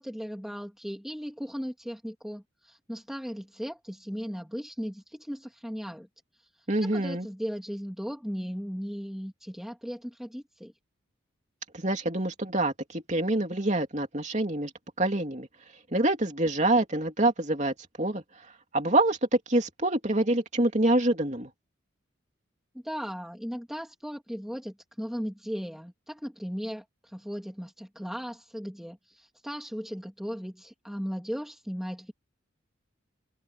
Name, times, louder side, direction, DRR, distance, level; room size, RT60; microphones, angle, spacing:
voice 1, 0.0-6.1 6.4-6.5 6.8-10.7 22.8-32.1, equal, ahead, 3.1 m, -37 dB
voice 2, 6.7-7.3 11.7-14.7 15.0-15.5 15.9-18.2 18.7-21.5, right 1 dB, 35° right, 3.1 m, -26 dB
head